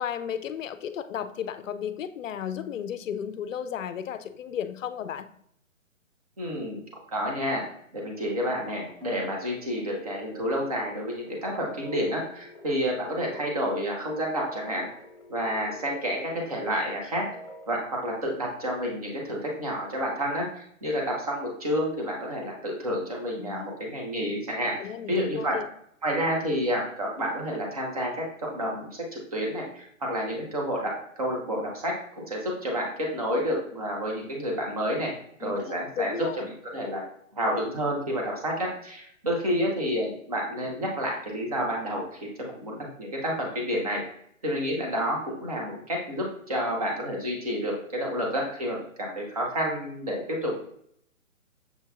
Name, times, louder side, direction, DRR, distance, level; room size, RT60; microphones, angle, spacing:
voice 1, 0.0-5.3 23.4-23.6 24.8-25.7 35.4-36.5, left 9 dB, 70° left, 11 dB, 0.5 m, -34 dB
voice 2, 6.4-6.8 7.1-7.6 7.9-14.9 15.3-17.2 17.7-24.7 25.1-25.6 26.0-30.9 31.2-35.1 35.4-36.3 36.6-37.0 37.3-44.0 44.4-50.6, equal, 30° right, -1 dB, 0.8 m, -29 dB
sound 1, 8.0-17.7, equal, 10° left, 0.7 m, -46 dB
6.8 x 2.8 x 2.3 m, 0.69 s
hypercardioid pair, 170°, 41 cm